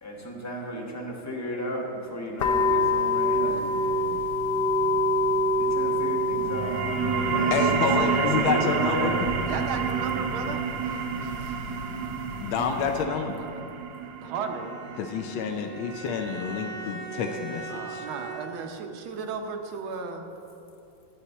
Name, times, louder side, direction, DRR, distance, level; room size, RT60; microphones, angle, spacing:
voice 1, 0.0-4.2 5.6-9.3, equal, 10° left, -2 dB, 0.9 m, -34 dB
sound 1, 2.4-13.0, left 1 dB, 65° left, 1.3 m, -28 dB
sound 2, 6.4-17.5, right 6 dB, 75° right, 1.3 m, -29 dB
voice 2, 7.5-9.1 12.4-13.4 15.0-18.1, left 6 dB, 85° left, 5 dB, 1.4 m, -28 dB
voice 3, 9.4-10.6 12.9-13.7 14.2-14.7 17.7-20.3, right 5 dB, 90° right, 5 dB, 1.6 m, -35 dB
Bowed string instrument, 14.3-18.8, right 3 dB, 55° right, 2.2 m, -40 dB
11.0 x 4.2 x 7.9 m, 2.7 s
omnidirectional pair, 2.2 m